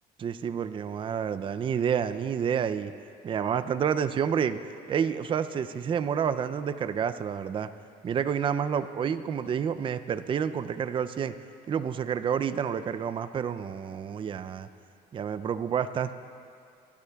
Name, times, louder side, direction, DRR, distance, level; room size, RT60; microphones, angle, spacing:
voice 1, 0.2-2.9 3.2-4.6 4.9-7.7 8.0-11.3 11.7-14.7 15.1-16.1, right 7 dB, 30° right, 11 dB, 0.4 m, -29 dB
19.5 x 12.0 x 2.3 m, 2.4 s
cardioid pair, 110°, 17 cm